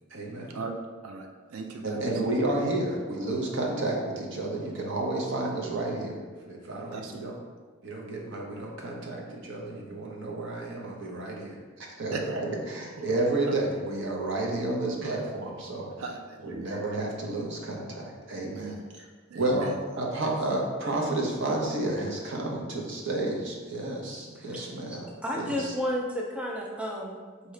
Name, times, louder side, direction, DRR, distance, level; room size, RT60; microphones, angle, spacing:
voice 1, 0.1-0.5 1.8-7.4 7.8-15.9 16.4-19.1 19.3-25.1 25.4-25.7, right 2 dB, 60° right, -1 dB, 0.8 m, -31 dB
voice 2, 1.0-2.0 6.9-7.1 12.1-12.4 16.0-16.7 18.3-18.8 19.3-19.7, right 4 dB, 80° right, 3 dB, 0.4 m, -38 dB
voice 3, 24.4-25.0 25.2-27.5, equal, 5° right, -1 dB, 0.4 m, -33 dB
4.7 x 2.8 x 3.2 m, 1.5 s
head